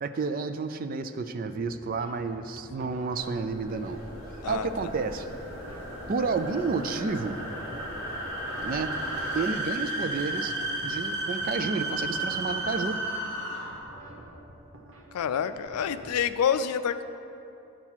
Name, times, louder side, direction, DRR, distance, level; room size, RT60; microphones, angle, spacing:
voice 1, 0.0-4.0 4.5-5.3 6.1-7.4 8.6-8.9 9.3-10.5 10.8-13.0, right 4 dB, 40° right, 10 dB, 0.3 m, -30 dB
sound 1, 1.8-16.2, right 1 dB, 60° right, 1.0 m, -49 dB
sound 2, 2.9-9.5, equal, 10° left, 2.2 m, -42 dB
sound 3, 3.3-13.9, right 1 dB, 90° right, 2.1 m, -34 dB
voice 2, 4.4-4.9 15.1-17.0, left 8 dB, 85° left, 12 dB, 0.3 m, -28 dB
10.0 x 5.7 x 4.5 m, 2.7 s
head